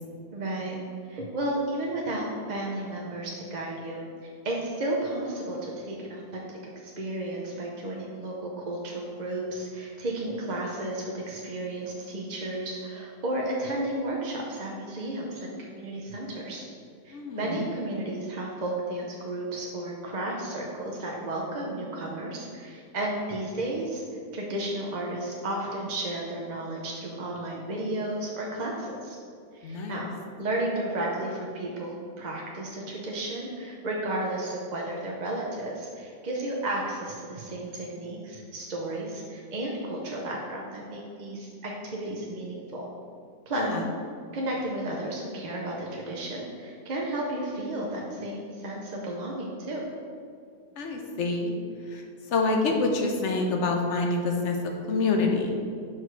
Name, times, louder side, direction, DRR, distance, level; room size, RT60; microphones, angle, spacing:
voice 1, 0.3-0.8 1.1-6.4 6.8-16.6 17.0-24.0 24.3-29.2 29.5-30.0 30.4-42.8 43.5-43.7 44.3-49.8, right 1 dB, 40° right, -2 dB, 0.7 m, -33 dB
voice 2, 17.1-17.6 29.6-30.1 43.5-43.8 50.8-51.5 51.9-52.0 52.3-55.6, left 3 dB, 60° left, 2 dB, 1.0 m, -27 dB
6.3 x 4.6 x 4.6 m, 2.3 s
omnidirectional pair, 1.4 m